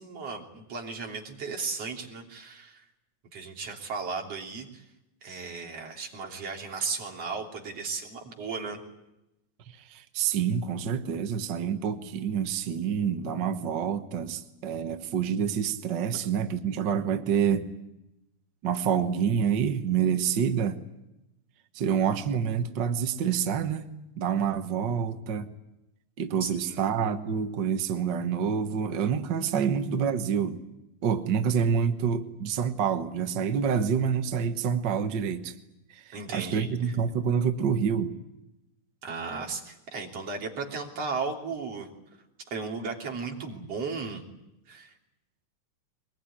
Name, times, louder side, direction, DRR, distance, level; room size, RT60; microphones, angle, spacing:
voice 1, 0.0-2.8 3.3-4.8 5.2-8.8 26.4-26.8 36.1-36.9 39.0-41.9 42.5-44.2 44.7-44.9, right 4 dB, 45° right, 1 dB, 4.1 m, -35 dB
voice 2, 9.7-17.7 18.6-20.8 21.7-23.9 24.2-25.5 26.2-30.6 31.0-35.5 35.9-38.1, right 7 dB, 65° right, 8 dB, 1.1 m, -27 dB
23.0 x 21.0 x 10.0 m, 0.91 s
omnidirectional pair, 3.9 m